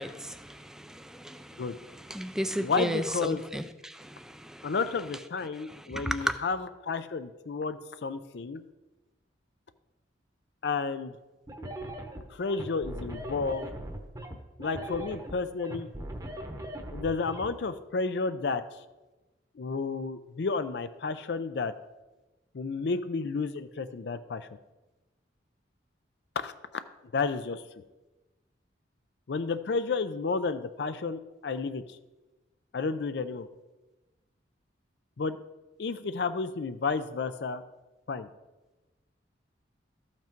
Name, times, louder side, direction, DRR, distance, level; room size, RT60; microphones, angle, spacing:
voice 1, 0.0-4.7 5.7-6.3, equal, 5° right, 9 dB, 0.3 m, -35 dB
voice 2, 2.6-3.4 4.6-8.6 10.6-11.2 12.3-13.7 14.6-15.9 16.9-18.6 19.6-21.7 22.5-24.5 26.4-26.5 27.1-27.6 29.3-32.0 32.7-33.5 35.2-35.4 35.8-37.6 38.1-38.3, left 4 dB, 60° left, 11 dB, 0.4 m, -31 dB
sound 1, 11.5-17.5, right 1 dB, 20° right, 0.9 m, -39 dB
13.0 x 5.9 x 4.5 m, 1.1 s
head